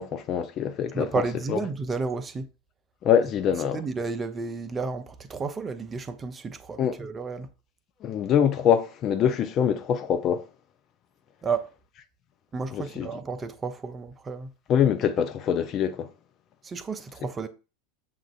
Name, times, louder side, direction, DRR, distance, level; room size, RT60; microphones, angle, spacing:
voice 1, 0.0-1.1 1.5-1.6 3.0-3.8 6.8-7.0 8.0-10.4 12.7-13.1 14.7-16.1, left 8 dB, 35° left, 0.5 m, -24 dB
voice 2, 0.9-2.5 3.7-7.5 11.4-11.7 12.5-14.5 16.6-17.5, right 4 dB, 20° right, 0.5 m, -32 dB
7.1 x 2.4 x 2.3 m
figure-of-eight pair, 80°, 0 cm